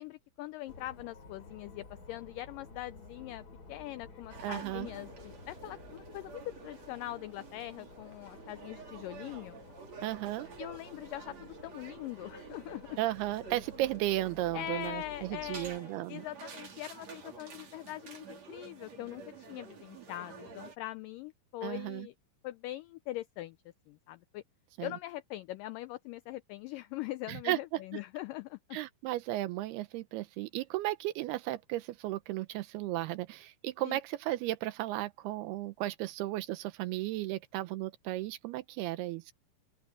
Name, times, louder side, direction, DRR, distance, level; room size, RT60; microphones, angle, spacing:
voice 1, 0.0-9.6 10.6-13.0 14.5-22.1 22.4-23.6 23.9-24.4 24.8-28.8 33.8-34.0, left 15 dB, 90° left, 1.9 m, -42 dB
sound 1, 0.7-15.8, left 3 dB, 25° left, 3.5 m, -53 dB
sound 2, 4.3-20.8, right 5 dB, 45° right, 4.3 m, -50 dB
voice 2, 4.4-4.9 9.9-10.5 13.0-16.2 21.6-22.1 24.8-24.9 27.3-27.8 28.7-39.3, right 16 dB, 85° right, 2.8 m, -35 dB
open air
omnidirectional pair, 4.5 m